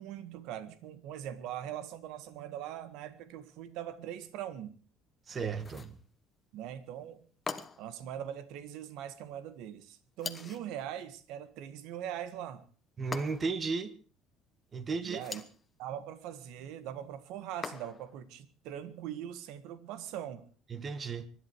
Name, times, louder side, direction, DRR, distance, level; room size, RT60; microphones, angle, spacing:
voice 1, 0.0-4.7 6.5-7.2 7.8-12.6 15.0-15.4 15.8-20.4, right 10 dB, 75° right, 1.7 m, -41 dB
voice 2, 5.3-5.9 13.0-13.9 14.7-15.2 20.7-21.3, right 4 dB, 30° right, 1.5 m, -34 dB
sound 1, 5.6-6.0 7.5-8.0 10.2-10.7 13.1-13.6 15.1-15.6 17.6-18.2, left 4 dB, 20° left, 1.3 m, -41 dB
24.5 x 11.5 x 4.7 m
cardioid pair, 140°, 0 cm